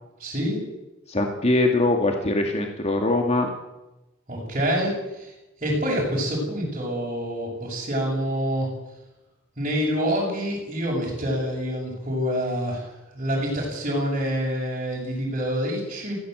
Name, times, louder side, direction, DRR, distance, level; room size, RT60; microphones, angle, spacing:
voice 1, 0.2-0.6 4.3-5.3 5.6-8.7 9.6-16.2, equal, 35° right, -6 dB, 7.2 m, -27 dB
voice 2, 1.1-3.5, left 2 dB, 35° left, 3 dB, 2.3 m, -22 dB
21.5 x 16.5 x 8.1 m, 0.98 s
head